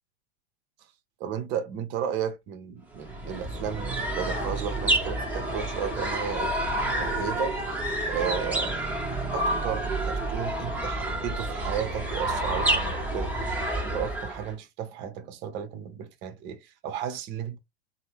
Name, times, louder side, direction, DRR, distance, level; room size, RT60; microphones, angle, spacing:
voice 1, 1.2-6.5 7.0-7.6 8.1-8.9 9.3-13.3 13.9-17.6, right 8 dB, 35° right, 0.8 m, -34 dB
sound 1, 3.0-14.5, right 1 dB, 5° right, 1.0 m, -29 dB
2.6 x 2.1 x 3.3 m
figure-of-eight pair, 95°, 32 cm